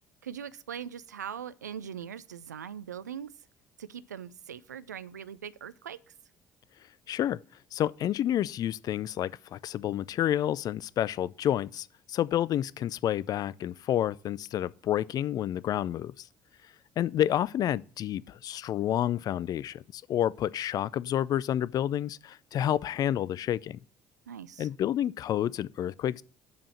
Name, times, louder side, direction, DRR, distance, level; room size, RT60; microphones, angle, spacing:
voice 1, 0.2-3.3 3.8-6.0 24.3-24.7, right 8 dB, 85° right, 0.3 m, -41 dB
voice 2, 7.1-7.4 7.7-16.3 17.0-23.8 24.6-26.2, left 11 dB, 45° left, 0.4 m, -29 dB
7.2 x 4.8 x 7.1 m
figure-of-eight pair, 55°, 9 cm